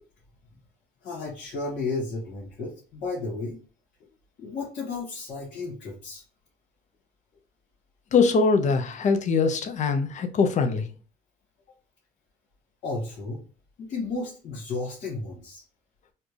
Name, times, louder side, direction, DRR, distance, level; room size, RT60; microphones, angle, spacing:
voice 1, 1.0-3.6 4.4-6.2 12.8-13.4 13.8-15.6, left 3 dB, 75° left, 1.9 m, -33 dB
voice 2, 8.1-10.9, left 4 dB, 45° left, 0.7 m, -22 dB
4.4 x 2.4 x 3.2 m
cardioid pair, 110°, 17 cm